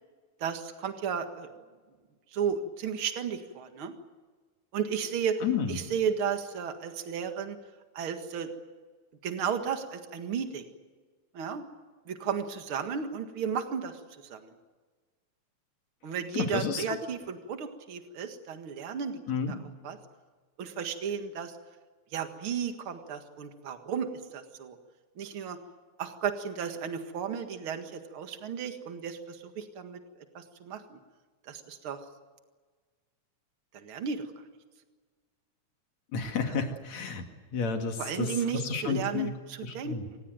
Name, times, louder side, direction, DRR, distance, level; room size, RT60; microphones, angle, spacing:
voice 1, 0.4-1.5 2.3-3.9 4.7-5.4 5.7-7.6 7.9-8.5 9.2-10.6 11.3-11.6 12.1-14.0 14.3-14.5 16.0-19.6 19.8-20.0 20.6-21.5 22.1-24.8 25.2-25.6 26.0-30.0 30.3-31.0 31.5-32.0 33.7-34.2 36.5-36.6 38.0-40.2, right 7 dB, 50° right, 7 dB, 2.5 m, -34 dB
voice 2, 5.4-5.8 16.3-17.0 19.3-19.5 36.1-37.2 37.5-39.3 39.6-40.0, left 5 dB, 65° left, 5 dB, 3.4 m, -31 dB
26.5 x 18.5 x 9.2 m, 1.4 s
omnidirectional pair, 3.3 m